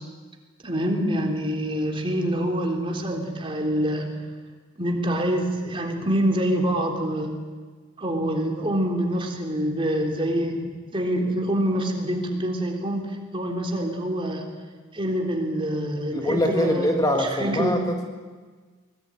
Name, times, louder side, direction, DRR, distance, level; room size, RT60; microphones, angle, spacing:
voice 1, 0.6-4.2 4.8-7.4 8.0-14.5 14.9-17.9, equal, 25° right, 1 dB, 3.7 m, -26 dB
voice 2, 16.1-18.1, equal, 20° left, 2 dB, 1.9 m, -24 dB
23.5 x 20.5 x 9.3 m, 1.4 s
head